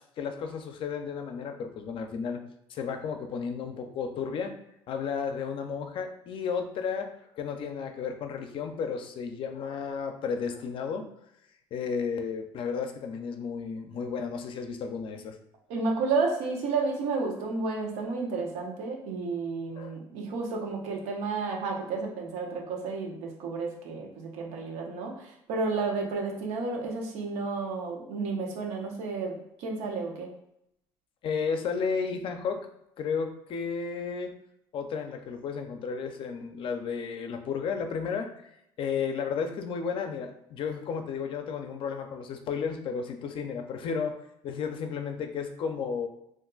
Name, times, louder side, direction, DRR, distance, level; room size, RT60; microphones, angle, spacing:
voice 1, 0.2-2.4 2.7-4.6 4.9-11.1 11.7-15.3 19.8-20.0 31.2-32.7 33.0-34.3 34.7-38.5 38.8-44.2 44.4-46.1, left 6 dB, 55° left, 6 dB, 0.5 m, -33 dB
voice 2, 15.7-30.3, right 4 dB, 80° right, 0 dB, 0.8 m, -31 dB
2.5 x 2.2 x 3.8 m, 0.80 s
supercardioid pair, 95°, 11 cm